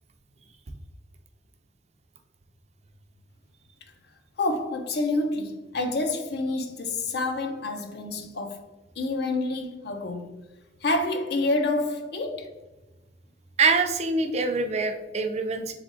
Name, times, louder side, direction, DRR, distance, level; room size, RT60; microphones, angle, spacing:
voice 1, 4.4-8.6 9.0-10.3 10.8-12.5, left 2 dB, 60° left, 0.6 m, -28 dB
voice 2, 13.6-15.7, right 4 dB, 35° right, 0.4 m, -24 dB
3.6 x 3.5 x 3.7 m
head